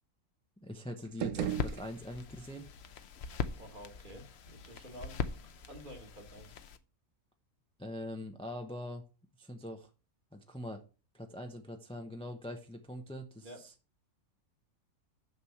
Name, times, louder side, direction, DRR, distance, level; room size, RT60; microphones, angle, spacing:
voice 1, 0.6-2.7 7.8-9.0 9.4-9.9 10.3-10.8 11.1-13.7, left 1 dB, 5° left, 4 dB, 0.6 m, -43 dB
sound 1, 1.0-2.5, right 11 dB, 80° right, 1.2 m, -37 dB
sound 2, 1.4-6.8, left 6 dB, 55° left, 0.8 m, -41 dB
voice 2, 3.6-5.2 5.7-6.5 13.4-13.6, equal, 35° right, 3 dB, 1.8 m, -50 dB
6.8 x 6.3 x 5.7 m, 0.33 s
omnidirectional pair, 1.6 m